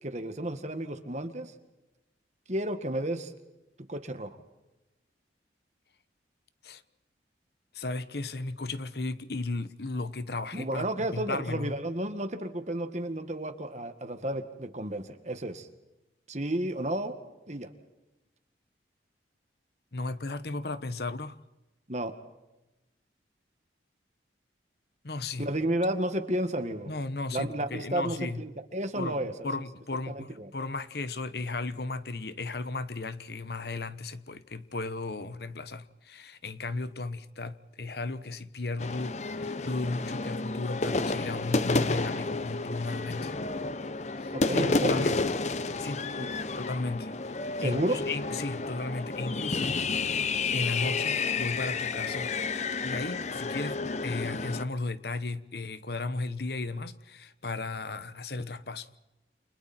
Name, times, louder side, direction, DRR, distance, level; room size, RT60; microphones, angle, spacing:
voice 1, 0.0-1.5 2.5-3.3 3.9-4.4 10.5-15.7 16.3-17.2 17.5-17.7 21.9-22.1 25.4-26.9 27.3-29.5 30.2-30.5 44.3-45.1 46.2-46.3 47.6-48.0, right 1 dB, 40° right, 1.9 m, -32 dB
voice 2, 7.7-11.7 19.9-21.4 25.0-25.5 26.8-28.4 28.9-43.4 44.2-45.2 45.8-46.1 46.6-47.1 47.5-52.3 52.8-58.9, left 3 dB, 60° left, 1.1 m, -35 dB
sound 1, 38.8-54.6, left 3 dB, 40° left, 0.8 m, -31 dB
29.5 x 28.5 x 4.5 m
head